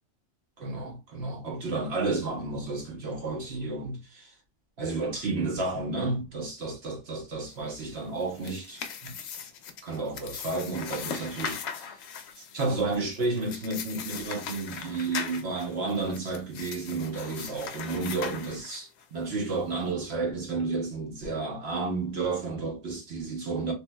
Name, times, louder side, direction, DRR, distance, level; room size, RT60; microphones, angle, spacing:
voice 1, 0.6-4.3 4.8-9.1 9.8-12.1 12.4-23.7, right 3 dB, 60° right, 1.1 m, -32 dB
sound 1, 8.1-19.0, left 7 dB, 65° left, 0.8 m, -39 dB
3.3 x 2.7 x 2.2 m
omnidirectional pair, 1.3 m